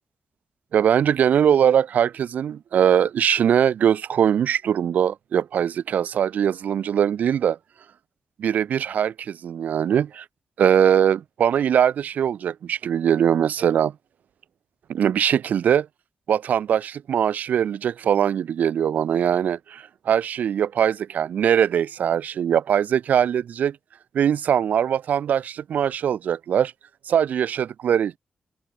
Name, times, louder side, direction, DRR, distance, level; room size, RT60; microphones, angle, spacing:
voice 1, 0.7-7.6 8.4-10.2 10.6-13.9 14.9-15.9 16.3-23.8 24.1-26.7 27.1-28.2, right 9 dB, 80° right, 1.9 m, -21 dB
open air
wide cardioid pair, 155°, 3 cm